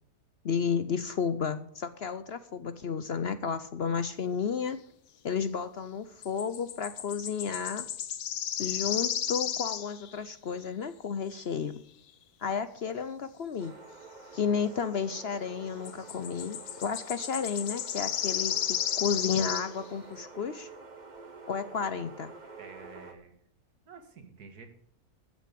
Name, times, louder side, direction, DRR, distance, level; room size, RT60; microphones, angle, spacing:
voice 1, 0.4-4.8 5.2-7.9 8.6-11.8 12.4-13.7 14.3-20.7 21.5-22.3, left 6 dB, 55° left, 13 dB, 0.7 m, -32 dB
sound 1, 6.2-10.2 15.8-19.7, left 9 dB, 80° left, 1.4 m, -33 dB
sound 2, 13.6-23.1, right 4 dB, 30° right, 1.3 m, -48 dB
voice 2, 22.6-23.3 23.9-24.7, right 5 dB, 90° right, 7 dB, 2.3 m, -50 dB
13.5 x 6.4 x 8.5 m, 0.64 s
omnidirectional pair, 1.6 m